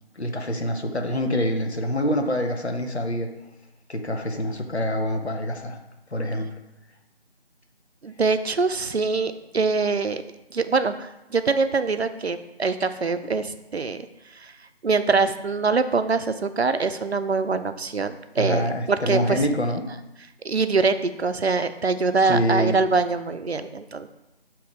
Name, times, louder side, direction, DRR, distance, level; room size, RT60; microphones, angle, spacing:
voice 1, 0.2-3.3 3.9-5.8 6.1-6.5 18.4-19.8 22.3-22.8, equal, 80° left, 4 dB, 1.0 m, -25 dB
voice 2, 8.0-10.2 10.5-14.1 14.4-14.5 14.8-19.5 20.4-24.1, right 4 dB, 75° right, 10 dB, 0.5 m, -24 dB
7.1 x 2.9 x 4.8 m, 0.93 s
figure-of-eight pair, 170°, 32 cm